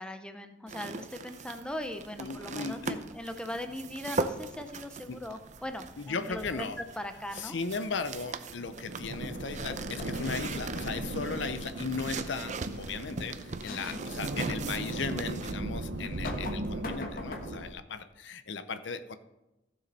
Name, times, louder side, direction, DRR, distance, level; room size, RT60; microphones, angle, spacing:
voice 1, 0.0-7.5 13.7-14.0, left 1 dB, 5° left, 7 dB, 0.7 m, -40 dB
sound 1, 0.7-15.5, right 4 dB, 40° right, 0.6 m, -40 dB
sound 2, 1.5-4.2 4.5-6.3 6.6-6.7 6.9-17.7, right 1 dB, 80° right, 1.0 m, -38 dB
voice 2, 2.2-3.0 5.1-5.2 6.0-6.8 7.3-19.2, left 4 dB, 75° left, 12 dB, 0.7 m, -37 dB
sound 3, 6.3-6.8 9.7-10.4 12.2-12.3 12.7-12.9 13.6-14.0 14.6-14.7 16.0-17.8, left 2 dB, 50° left, 1.2 m, -42 dB
15.0 x 6.9 x 4.2 m, 0.96 s
head